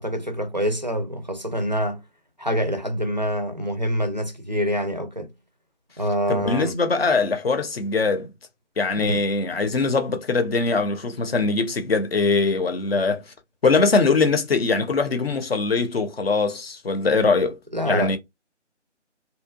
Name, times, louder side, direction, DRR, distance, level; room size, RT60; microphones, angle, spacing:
voice 1, 0.0-2.0 2.4-5.3 6.0-6.8 9.0-9.2 17.7-18.2, equal, 40° right, 0.4 m, -26 dB
voice 2, 6.3-8.3 8.8-13.2 13.6-17.6 17.9-18.2, left 4 dB, 55° left, 0.7 m, -22 dB
2.7 x 2.2 x 2.2 m
figure-of-eight pair, 160°, 36 cm